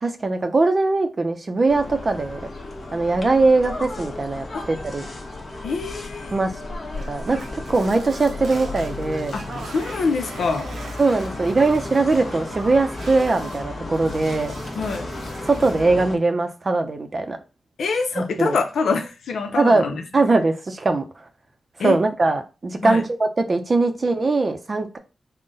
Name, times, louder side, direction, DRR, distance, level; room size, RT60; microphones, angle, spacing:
voice 1, 0.0-2.5 2.9-5.0 6.3-6.6 7.1-9.4 11.0-14.5 15.4-17.4 18.2-18.6 19.6-19.9 20.1-21.0 21.8-25.0, right 3 dB, 40° right, 0.5 m, -21 dB
sound 1, 1.7-16.2, left 2 dB, 45° left, 0.9 m, -34 dB
voice 2, 5.6-6.4 9.3-10.7 14.7-15.1 17.8-20.0 21.8-22.0 22.8-23.0, left 4 dB, 90° left, 0.6 m, -25 dB
sound 2, 6.9-13.7 13.9-15.9, right 3 dB, 90° right, 0.7 m, -41 dB
3.8 x 2.1 x 3.8 m
wide cardioid pair, 100°, 0 cm